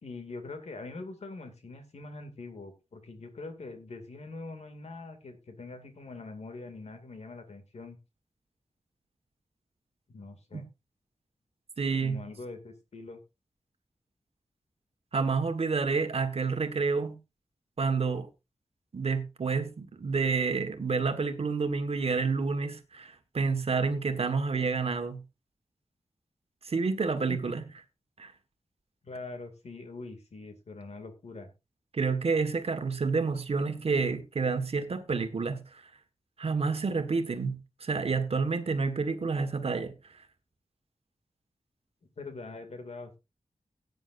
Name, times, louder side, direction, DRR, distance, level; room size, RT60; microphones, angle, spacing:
voice 1, 0.0-8.0 10.1-10.6 12.0-13.2 27.3-27.4 29.0-31.5 42.2-43.2, left 3 dB, 65° left, 2.3 m, -43 dB
voice 2, 11.8-12.2 15.1-17.2 17.8-18.3 18.9-25.2 26.6-27.6 28.2-28.3 31.9-35.8 36.4-39.9, right 4 dB, 60° right, 1.5 m, -29 dB
17.0 x 9.4 x 2.6 m
wide cardioid pair, 110°, 12 cm